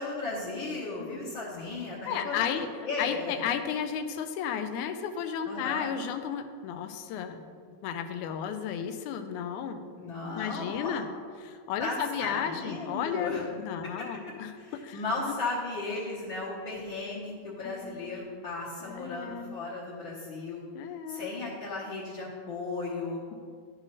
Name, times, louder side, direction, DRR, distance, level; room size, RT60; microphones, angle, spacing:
voice 1, 0.0-3.3 5.4-5.9 10.0-11.0 11.8-13.4 14.0-14.1 14.6-20.6 21.1-23.2, left 3 dB, 55° left, -7 dB, 1.4 m, -35 dB
voice 2, 1.0-1.3 2.1-2.7 3.0-7.4 7.8-9.8 10.4-11.1 11.4-14.6 14.8-15.4 17.6-18.2 18.8-19.5 20.8-21.3, left 8 dB, 80° left, 8 dB, 2.0 m, -33 dB
11.0 x 7.3 x 4.1 m, 2.1 s
omnidirectional pair, 3.6 m